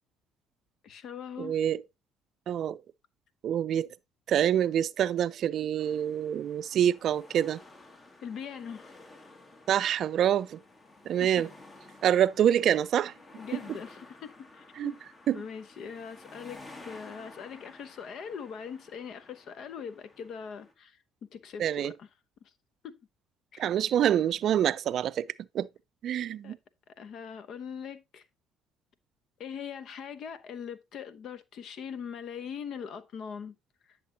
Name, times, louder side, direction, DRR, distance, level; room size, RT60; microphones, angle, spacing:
voice 1, 0.8-1.5 8.2-8.9 11.2-11.4 13.3-15.0 15.3-16.6 16.9-22.1 22.8-22.9 23.5-23.6 26.4-26.6 27.0-28.2 29.4-33.6, left 7 dB, 60° left, 0.9 m, -41 dB
voice 2, 1.4-1.8 2.5-2.8 3.4-3.9 4.3-7.6 9.7-10.6 11.1-11.5 12.0-13.1 14.8-14.9 15.3-15.4 21.6-21.9 23.6-25.7 26.0-26.6, right 10 dB, 60° right, 0.4 m, -26 dB
sound 1, 5.8-20.7, left 2 dB, 35° left, 2.1 m, -53 dB
9.9 x 6.7 x 2.8 m
hypercardioid pair, 60°, 0 cm